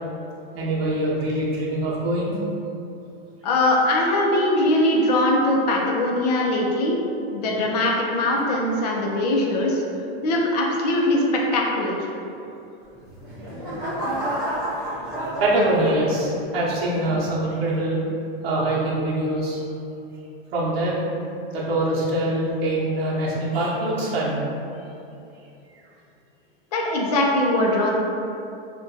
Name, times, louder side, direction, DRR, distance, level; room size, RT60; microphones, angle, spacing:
voice 1, 0.5-2.4 15.4-18.0 18.4-19.6 20.5-21.0 21.5-24.4, right 1 dB, 70° right, -5 dB, 0.9 m, -23 dB
voice 2, 3.4-7.0 7.3-9.8 10.2-11.9 26.7-27.9, left 1 dB, 40° left, -1 dB, 0.4 m, -21 dB
sound 1, 12.9-16.5 17.1-17.4, right 1 dB, 15° right, 0.5 m, -30 dB
2.5 x 2.2 x 3.7 m, 2.7 s
supercardioid pair, 175°, 31 cm